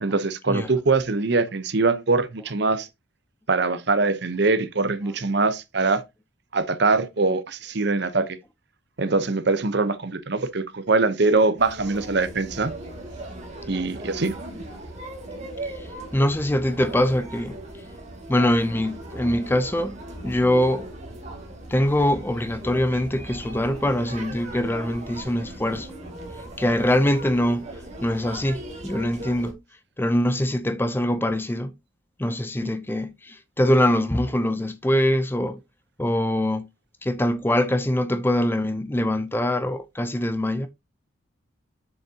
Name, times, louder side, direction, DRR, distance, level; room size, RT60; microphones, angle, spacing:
voice 1, 0.0-2.9 3.5-6.0 6.5-8.4 9.0-12.7 13.7-14.4, right 3 dB, 55° right, 0.8 m, -23 dB
sound 1, 11.6-29.5, right 1 dB, 35° right, 2.2 m, -38 dB
voice 2, 16.1-17.6 18.3-20.9 21.7-25.9 26.6-29.6 30.0-31.7 32.2-35.6 36.0-36.7 37.0-40.7, left 1 dB, 10° left, 0.5 m, -23 dB
7.1 x 6.5 x 2.8 m
head